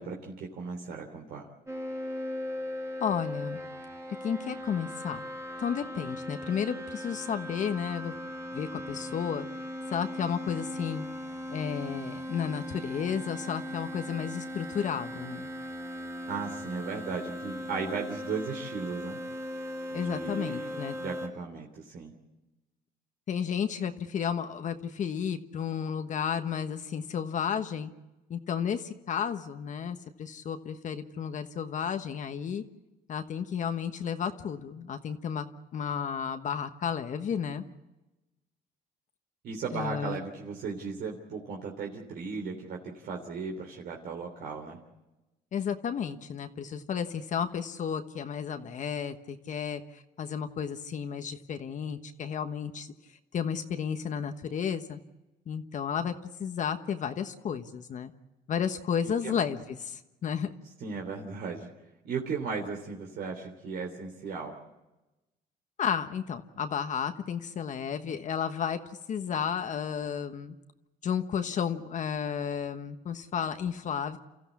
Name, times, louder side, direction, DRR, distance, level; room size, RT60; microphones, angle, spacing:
voice 1, 0.0-1.5 16.3-19.2 19.9-22.1 39.4-44.8 59.2-59.4 60.8-61.7 62.0-64.5, right 5 dB, 65° right, 0 dB, 3.3 m, -36 dB
sound 1, 1.7-21.3, left 1 dB, 15° right, 2.9 m, -38 dB
voice 2, 3.0-3.6 4.2-5.2 5.6-8.2 8.5-9.5 9.9-11.1 11.5-15.5 19.9-21.0 23.3-27.9 28.3-32.6 33.1-35.5 35.7-37.6 39.7-40.2 45.5-52.9 53.3-55.0 55.5-56.1 56.4-58.1 58.5-60.5 65.8-68.8 69.1-70.5 71.0-74.2, left 7 dB, 50° left, 8 dB, 1.2 m, -32 dB
29.0 x 14.5 x 8.4 m, 1.0 s
cardioid pair, 110°, 17 cm